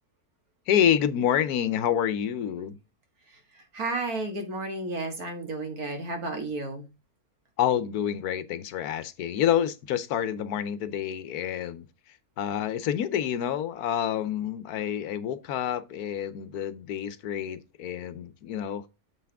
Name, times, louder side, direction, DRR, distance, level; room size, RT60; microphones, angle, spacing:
voice 1, 0.7-2.8 7.6-11.8 12.4-18.9, left 9 dB, 80° left, 1.3 m, -28 dB
voice 2, 3.5-6.9, right 2 dB, 70° right, 2.4 m, -32 dB
7.6 x 5.9 x 3.5 m
omnidirectional pair, 1.6 m